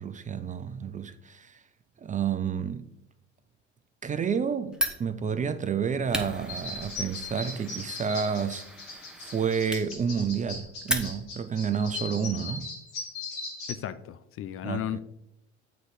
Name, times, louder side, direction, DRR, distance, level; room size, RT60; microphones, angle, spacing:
voice 1, 0.0-1.6 2.0-2.8 4.0-8.6 8.9-12.7 14.6-15.0, right 7 dB, 20° right, 0.5 m, -30 dB
Fire, 4.7-11.5, equal, ahead, 1.0 m, -36 dB
sound 1, 6.5-13.7, left 3 dB, 80° left, 2.1 m, -39 dB
voice 2, 13.7-15.0, left 11 dB, 40° left, 0.5 m, -34 dB
7.9 x 3.9 x 4.9 m
hypercardioid pair, 70°, 34 cm